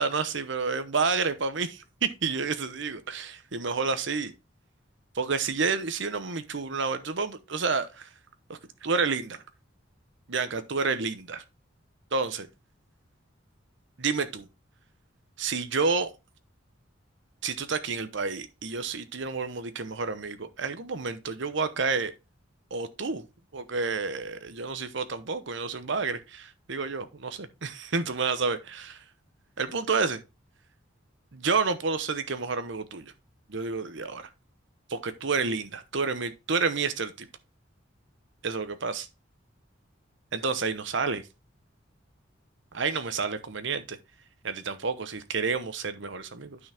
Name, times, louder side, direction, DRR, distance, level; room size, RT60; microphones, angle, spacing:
voice 1, 0.0-4.3 5.1-8.1 8.5-9.4 10.3-11.4 12.1-12.5 14.0-14.5 15.4-16.1 17.4-22.1 22.7-23.2 23.5-29.0 29.6-30.2 31.3-33.1 33.5-34.2 34.9-37.3 38.4-39.1 40.3-41.2 42.7-44.0 44.4-46.6, right 4 dB, 65° right, 1.0 m, -29 dB
9.5 x 5.9 x 3.5 m
head